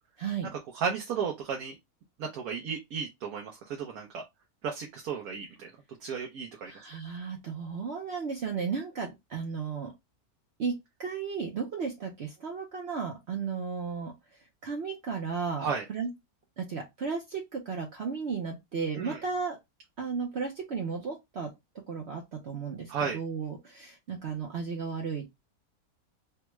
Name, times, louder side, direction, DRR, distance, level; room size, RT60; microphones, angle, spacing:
voice 1, 0.2-0.5 6.6-9.9 10.6-14.1 14.6-16.1 16.6-19.6 20.0-21.5 21.9-25.3, right 5 dB, 55° right, 0.9 m, -34 dB
voice 2, 0.7-1.8 2.2-4.2 4.6-5.7 6.0-6.7 15.6-15.9 19.0-19.2 22.9-23.2, right 6 dB, 75° right, 1.2 m, -34 dB
3.4 x 2.2 x 3.0 m
omnidirectional pair, 1.6 m